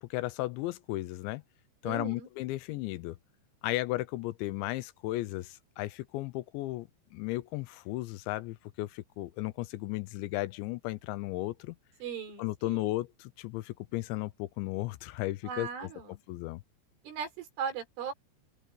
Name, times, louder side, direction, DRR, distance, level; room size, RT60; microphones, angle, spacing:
voice 1, 0.0-1.4 1.8-3.2 3.6-11.8 12.4-15.7 16.3-16.6, left 18 dB, 80° left, 2.8 m, -35 dB
voice 2, 1.8-2.3 12.0-13.0 15.4-16.2 17.0-18.1, right 7 dB, 85° right, 7.2 m, -38 dB
open air
omnidirectional pair, 5.5 m